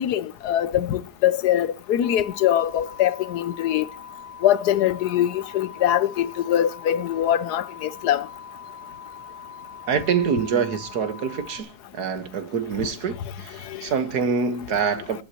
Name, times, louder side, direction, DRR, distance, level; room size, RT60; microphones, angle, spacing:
voice 1, 0.0-3.9 4.4-8.3 13.7-13.8, left 11 dB, 85° left, 1.4 m, -23 dB
sound 1, 2.0-11.6, left 6 dB, 60° right, 4.3 m, -42 dB
voice 2, 9.9-15.2, right 6 dB, 80° right, 1.8 m, -25 dB
18.0 x 11.5 x 2.9 m
omnidirectional pair, 1.7 m